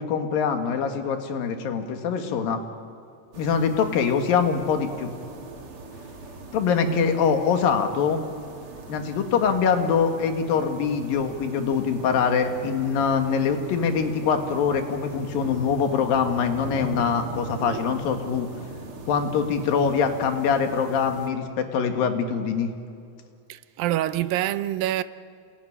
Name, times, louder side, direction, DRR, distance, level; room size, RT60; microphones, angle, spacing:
voice 1, 0.0-2.6 3.4-5.1 6.5-8.3 8.9-18.5 19.1-22.7, left 6 dB, 85° left, 3.5 m, -24 dB
sound 1, 3.3-21.3, right 2 dB, 45° right, 2.6 m, -39 dB
voice 2, 23.5-25.0, right 13 dB, 90° right, 2.5 m, -26 dB
28.0 x 19.5 x 10.0 m
omnidirectional pair, 3.9 m